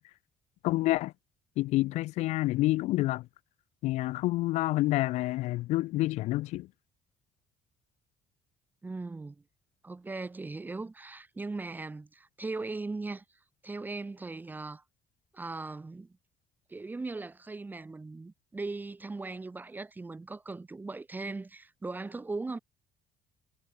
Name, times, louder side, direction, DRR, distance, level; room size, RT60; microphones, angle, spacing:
voice 1, 0.6-1.1 1.6-3.3 3.8-6.7, left 18 dB, 85° left, 2.0 m, -28 dB
voice 2, 8.8-9.4 9.8-13.2 13.6-14.8 15.3-16.1 16.7-22.6, right 3 dB, 15° right, 1.8 m, -39 dB
cardioid pair, 130°, 11 cm